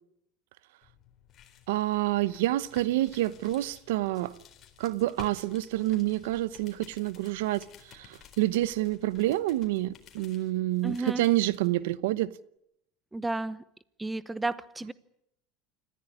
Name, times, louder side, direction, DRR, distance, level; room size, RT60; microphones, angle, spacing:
sound 1, 0.8-11.7, left 8 dB, 40° left, 4.0 m, -54 dB
voice 1, 1.7-4.4 4.8-12.3, right 16 dB, 85° right, 0.9 m, -28 dB
voice 2, 10.8-11.3 13.1-13.6 14.0-14.9, right 2 dB, 10° right, 0.9 m, -32 dB
26.0 x 15.0 x 9.8 m
supercardioid pair, 120°, 0 cm